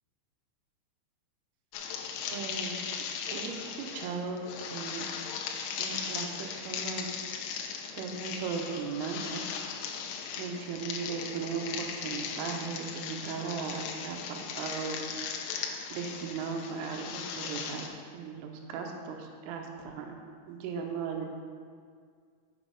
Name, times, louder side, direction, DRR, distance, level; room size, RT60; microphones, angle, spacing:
sound 1, 1.7-17.9, left 6 dB, 80° left, 2.9 m, -38 dB
voice 1, 2.3-3.0 3.3-4.4 4.7-5.1 5.8-7.2 8.0-9.4 10.4-15.0 15.9-17.9 18.1-20.2 20.5-21.3, right 5 dB, 90° right, 2 dB, 3.3 m, -37 dB
7.1 x 6.2 x 5.1 m, 2.1 s
omnidirectional pair, 5.6 m